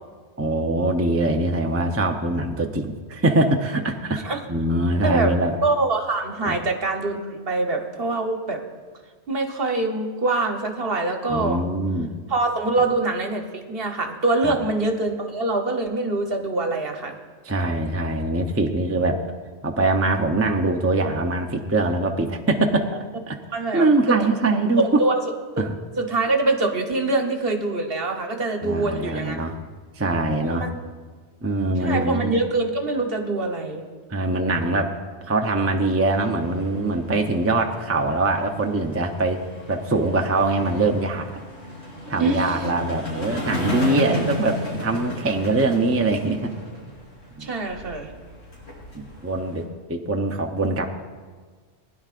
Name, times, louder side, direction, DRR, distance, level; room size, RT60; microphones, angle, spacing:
voice 1, 0.4-5.5 6.4-6.6 11.3-12.1 14.4-14.6 17.4-19.2 19.6-22.8 23.3-23.4 23.7-24.8 25.6-25.7 28.6-29.7 30.0-30.7 31.4-32.3 34.1-39.4 39.7-41.3 42.1-46.5 47.4-47.5 48.9-49.6 49.9-50.9, right 2 dB, 15° right, 3 dB, 0.5 m, -23 dB
voice 2, 5.6-8.6 9.3-11.6 12.3-17.2 23.5-24.2 24.8-25.1 25.6-25.7 26.0-29.4 30.4-30.7 31.8-33.8 42.2-42.6 47.4-48.1, right 2 dB, 60° right, 3 dB, 1.3 m, -24 dB
sound 1, 35.8-49.6, left 1 dB, 70° left, 4.1 m, -34 dB
20.5 x 10.5 x 2.5 m, 1.5 s
omnidirectional pair, 1.2 m